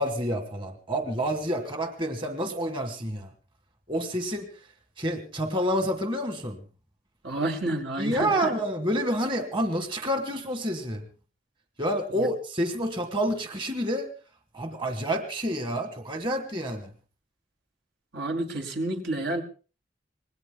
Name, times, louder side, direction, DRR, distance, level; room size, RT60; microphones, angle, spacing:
voice 1, 0.0-3.3 3.9-4.4 5.0-6.6 8.0-11.0 11.8-14.1 14.5-16.9, equal, 30° right, 6 dB, 1.4 m, -28 dB
voice 2, 7.2-8.3 18.1-19.4, right 2 dB, 80° right, 1 dB, 2.9 m, -29 dB
26.0 x 20.0 x 2.3 m, 0.36 s
head